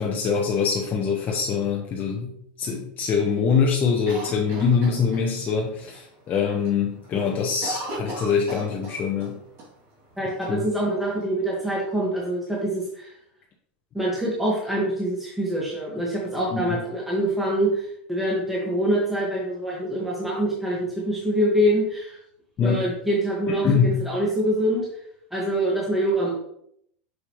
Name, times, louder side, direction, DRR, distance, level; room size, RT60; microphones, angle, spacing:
voice 1, 0.0-2.3 2.6-9.4 10.5-10.7 16.5-16.8 22.6-22.9 23.6-24.0, left 6 dB, 35° left, -1 dB, 1.0 m, -24 dB
Cough, 4.1-5.5 5.9-6.0 6.3-6.7 7.0-9.3 9.6-9.7 10.4-11.2, right 1 dB, 45° right, 2.6 m, -36 dB
voice 2, 10.2-13.1 13.9-22.2 22.6-24.9 25.3-26.3, right 1 dB, 5° right, -5 dB, 1.7 m, -25 dB
6.5 x 4.8 x 3.1 m, 0.72 s
supercardioid pair, 115°, 5 cm